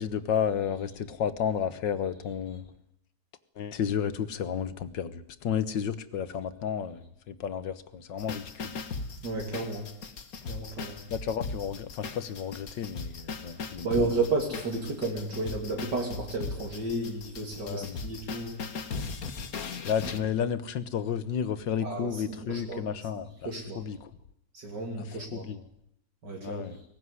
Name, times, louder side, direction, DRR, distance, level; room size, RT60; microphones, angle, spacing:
voice 1, 0.0-2.6 3.6-8.8 11.1-14.2 17.6-18.0 19.9-24.1 25.1-25.6 26.4-26.8, left 8 dB, 70° left, 14 dB, 1.9 m, -32 dB
sound 1, 8.2-20.2, left 4 dB, 50° left, 1.9 m, -38 dB
voice 2, 9.2-9.9 10.4-11.0 13.8-18.6 21.8-22.8 23.4-23.8 24.5-25.5 26.2-26.7, right 3 dB, 60° right, 1 dB, 3.5 m, -32 dB
21.5 x 18.5 x 9.9 m, 0.74 s
omnidirectional pair, 2.1 m